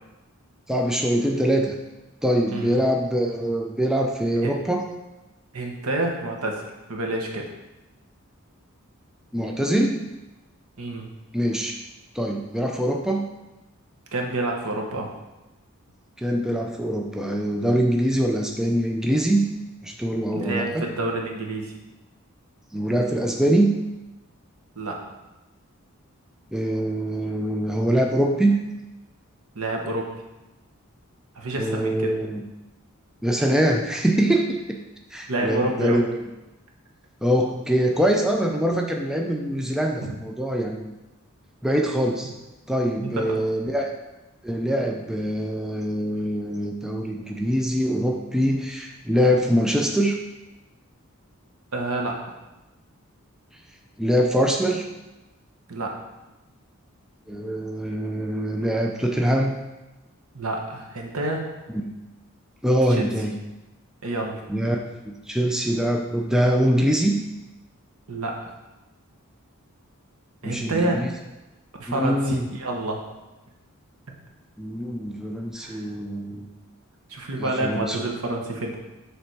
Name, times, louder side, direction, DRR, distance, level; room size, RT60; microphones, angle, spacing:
voice 1, 0.7-1.8 2.2-4.9 9.3-10.1 11.3-11.8 12.1-13.3 16.2-19.5 19.8-20.9 22.7-23.7 26.5-28.6 31.6-32.4 33.2-34.8 35.1-36.1 37.2-40.9 41.6-42.3 42.7-43.9 44.4-50.2 54.0-54.8 57.3-59.6 61.7-61.9 62.6-63.3 64.5-67.2 70.4-71.1 71.9-72.5 74.6-76.5 77.4-78.0, equal, ahead, 1 dB, 0.3 m, -23 dB
voice 2, 2.5-2.8 4.4-4.5 5.5-6.6 6.9-7.5 10.8-11.1 14.1-15.1 20.3-21.7 24.8-25.0 29.5-30.1 31.4-32.1 35.3-36.0 40.0-40.1 43.0-43.4 51.7-52.2 55.7-55.9 60.3-61.4 63.0-63.1 64.0-64.5 68.1-68.5 70.4-71.1 71.8-73.0 75.6-75.8 77.1-78.8, right 2 dB, 85° right, 1 dB, 1.1 m, -28 dB
6.7 x 3.5 x 4.6 m, 1.0 s
head